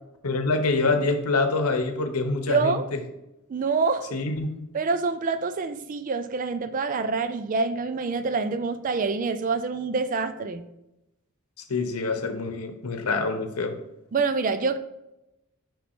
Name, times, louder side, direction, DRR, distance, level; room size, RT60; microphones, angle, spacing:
voice 1, 0.2-3.0 4.1-4.5 11.7-13.7, left 3 dB, 90° left, 0.8 m, -25 dB
voice 2, 2.5-2.9 3.5-4.2 4.7-10.6 14.1-14.8, right 4 dB, 35° right, 0.3 m, -26 dB
5.4 x 5.1 x 3.5 m
head